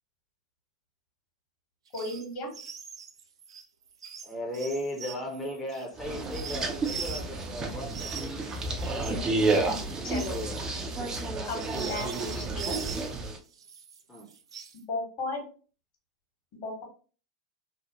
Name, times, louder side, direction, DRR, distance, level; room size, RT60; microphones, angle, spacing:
voice 1, 1.9-2.5 10.0-10.4 11.4-12.8 14.9-15.4 16.6-16.8, left 2 dB, 50° left, 1 dB, 1.4 m, -35 dB
sound 1, 1.9-2.2 2.5-7.5 7.9-13.1 13.5-14.8, right 7 dB, 80° right, 0.4 m, -42 dB
voice 2, 4.2-8.1 8.8-9.3 10.1-10.6 14.1-14.3, left 1 dB, 15° left, -2 dB, 0.7 m, -36 dB
sound 2, 6.0-13.4, right 3 dB, 25° right, 0.5 m, -31 dB
2.9 x 2.0 x 2.9 m, 0.39 s
hypercardioid pair, 95°, 3 cm